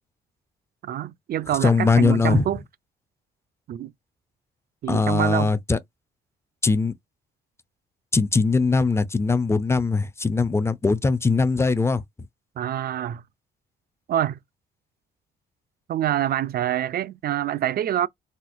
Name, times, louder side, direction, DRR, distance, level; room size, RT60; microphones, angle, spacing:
voice 1, 0.8-2.6 3.7-3.9 4.8-5.5 12.6-13.2 14.1-14.4 15.9-18.1, right 11 dB, 50° right, 0.4 m, -26 dB
voice 2, 1.6-2.4 4.9-5.8 6.6-6.9 8.1-12.0, left 4 dB, 15° left, 0.4 m, -21 dB
4.2 x 2.1 x 2.5 m
cardioid pair, 90°, 20 cm